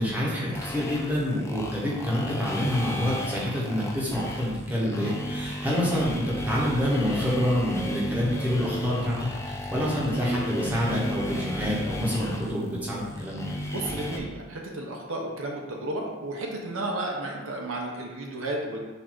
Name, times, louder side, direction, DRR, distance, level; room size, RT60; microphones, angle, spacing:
voice 1, 0.0-13.5, equal, 10° right, -6 dB, 0.9 m, -27 dB
sound 1, 0.5-14.2, equal, 15° left, 0.3 m, -34 dB
voice 2, 13.6-18.8, right 1 dB, 70° right, 0 dB, 0.7 m, -33 dB
4.3 x 2.6 x 4.4 m, 1.2 s
head